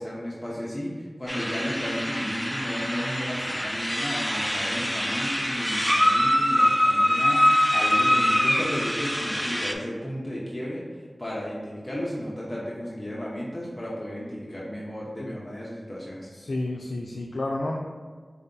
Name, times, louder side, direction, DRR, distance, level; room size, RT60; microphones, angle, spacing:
voice 1, 0.0-10.8 11.2-16.3, equal, 25° left, -6 dB, 0.8 m, -33 dB
sound 1, 1.3-9.7, equal, ahead, 0.3 m, -24 dB
voice 2, 16.3-17.8, left 2 dB, 85° left, -1 dB, 0.4 m, -31 dB
4.3 x 2.7 x 3.7 m, 1.5 s
wide cardioid pair, 50°, 0 cm